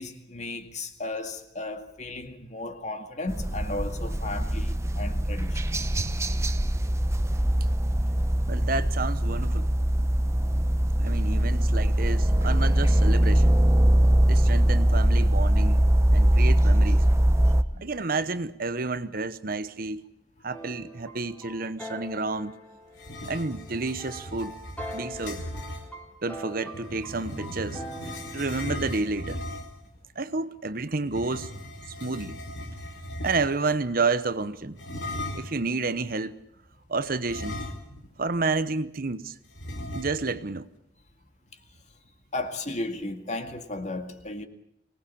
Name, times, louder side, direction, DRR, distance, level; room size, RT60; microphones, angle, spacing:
voice 1, 0.0-5.9 17.7-17.9 42.3-44.5, left 2 dB, 40° left, 2.1 m, -35 dB
sound 1, 3.3-17.6, right 1 dB, 15° right, 0.9 m, -22 dB
voice 2, 8.5-9.7 11.0-13.6 14.3-17.0 17.8-20.0 20.4-22.5 23.2-24.5 24.9-25.4 26.2-27.8 28.3-29.4 30.2-31.5 31.9-32.4 33.2-34.8 35.3-36.3 36.9-37.6 38.2-39.3 39.9-40.7, right 3 dB, 50° right, 1.0 m, -30 dB
sound 2, 20.5-28.8, equal, 5° left, 3.8 m, -42 dB
sound 3, 22.9-25.9 26.7-29.9 31.0-33.7 34.8-35.6 37.2-38.2 38.5-38.6 39.6-40.4, left 1 dB, 70° left, 4.5 m, -37 dB
24.5 x 19.0 x 8.6 m
head